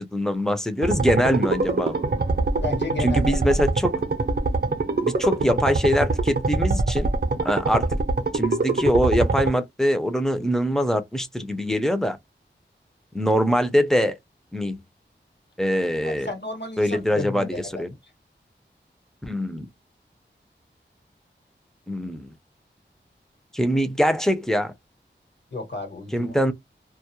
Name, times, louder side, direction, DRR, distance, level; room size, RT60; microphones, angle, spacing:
voice 1, 0.0-2.0 3.0-4.0 5.0-7.1 7.4-8.0 8.3-12.2 13.1-14.2 14.5-14.8 15.6-16.3 16.8-17.9 19.2-19.7 21.9-22.3 23.5-24.7 26.1-26.5, equal, ahead, 0.5 m, -23 dB
sound 1, 0.8-9.5, right 3 dB, 55° right, 0.5 m, -24 dB
voice 2, 2.6-3.2 16.0-18.0 25.5-26.4, left 2 dB, 65° left, 1.1 m, -32 dB
2.3 x 2.0 x 2.8 m
wide cardioid pair, 60°, 20 cm